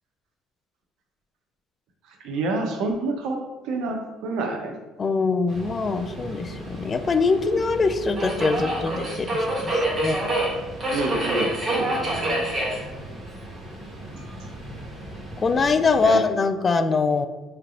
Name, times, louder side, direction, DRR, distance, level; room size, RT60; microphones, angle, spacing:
voice 1, 2.2-4.8 10.9-12.4 14.1-14.2 16.0-16.2, right 3 dB, 75° right, 3 dB, 0.7 m, -28 dB
voice 2, 5.0-10.2 15.4-17.3, left 4 dB, 30° left, 7 dB, 0.3 m, -23 dB
Subway metro underground, 5.5-16.0, right 1 dB, 30° right, 1.1 m, -29 dB
5.5 x 3.3 x 2.5 m, 1.2 s
cardioid pair, 115°, 0 cm